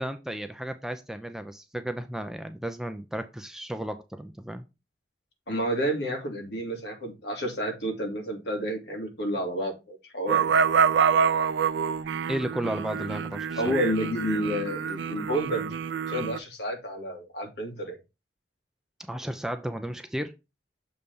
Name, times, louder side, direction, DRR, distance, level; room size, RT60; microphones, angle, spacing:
voice 1, 0.0-4.6 12.3-13.7 19.1-20.3, right 1 dB, 5° right, 0.4 m, -34 dB
voice 2, 5.5-10.5 13.6-15.7 16.1-18.0, equal, 65° left, 2.0 m, -30 dB
sound 1, 10.3-16.4, right 7 dB, 75° right, 0.4 m, -26 dB
6.9 x 3.3 x 5.2 m
head